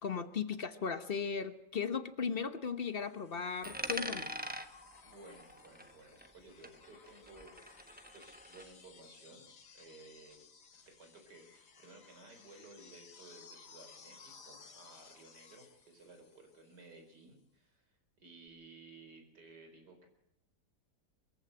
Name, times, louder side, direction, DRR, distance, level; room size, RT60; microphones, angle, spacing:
voice 1, 0.0-4.3, left 6 dB, 40° left, 10 dB, 1.1 m, -37 dB
sound 1, 3.0-17.0 18.5-18.6, left 5 dB, 80° left, 2.3 m, -59 dB
Coin (dropping), 3.6-6.4 6.6-8.6, equal, 5° right, 0.9 m, -43 dB
voice 2, 5.0-9.4 9.7-10.4 10.9-20.1, right 2 dB, 85° right, 5 dB, 5.0 m, -57 dB
23.0 x 15.0 x 7.8 m, 0.83 s
omnidirectional pair, 1.7 m